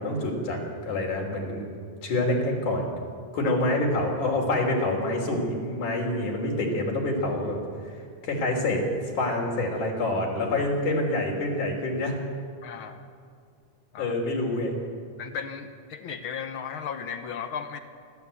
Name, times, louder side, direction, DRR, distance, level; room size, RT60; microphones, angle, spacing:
voice 1, 0.0-1.6 2.0-2.9 3.3-7.6 8.2-8.8 9.1-12.1 14.0-14.7, left 2 dB, 80° left, -1 dB, 4.9 m, -26 dB
voice 2, 12.6-13.1 13.9-14.1 15.2-17.8, left 7 dB, 65° left, 8 dB, 1.4 m, -35 dB
28.0 x 12.0 x 8.4 m, 2.2 s
omnidirectional pair, 3.5 m